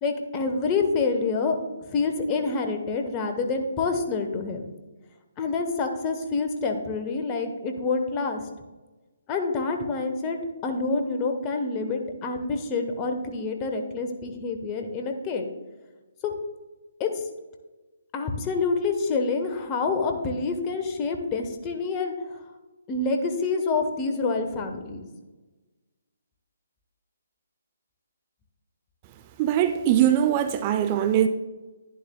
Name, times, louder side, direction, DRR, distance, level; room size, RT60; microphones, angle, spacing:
voice 1, 0.0-1.6 1.9-4.7 5.4-8.4 9.3-15.4 16.2-16.3 17.0-17.1 18.1-22.1 22.9-25.1, left 4 dB, 25° left, 1.1 m, -27 dB
voice 2, 29.4-31.3, right 10 dB, 30° right, 0.5 m, -21 dB
11.0 x 11.0 x 2.3 m
figure-of-eight pair, 140°, 0 cm